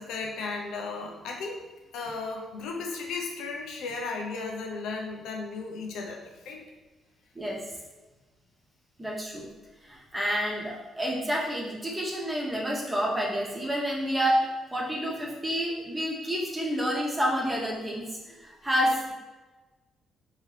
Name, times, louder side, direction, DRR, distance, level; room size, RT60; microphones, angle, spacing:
voice 1, 0.0-1.6 1.9-6.6, left 4 dB, 85° left, 0 dB, 0.6 m, -35 dB
voice 2, 9.0-9.5 9.8-19.1, equal, 15° right, -3 dB, 0.9 m, -29 dB
3.6 x 2.9 x 3.2 m, 1.2 s
cardioid pair, 90°, 0 cm